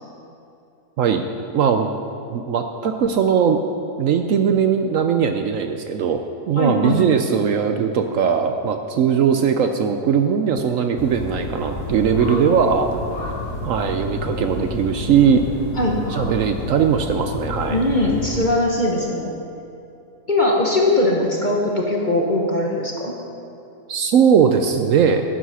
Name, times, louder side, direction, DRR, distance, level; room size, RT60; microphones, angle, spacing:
voice 1, 1.5-1.9 2.3-3.7 4.0-12.9 13.6-15.5 16.1-17.8 23.9-25.2, right 7 dB, 65° right, 6 dB, 0.9 m, -19 dB
voice 2, 6.6-7.0 12.3-12.5 15.8-16.0 17.7-19.3 20.3-23.2, left 1 dB, 35° left, -1 dB, 1.1 m, -20 dB
sound 1, 11.0-18.5, left 3 dB, 85° left, 1.7 m, -30 dB
10.0 x 9.6 x 5.6 m, 2.7 s
omnidirectional pair, 1.7 m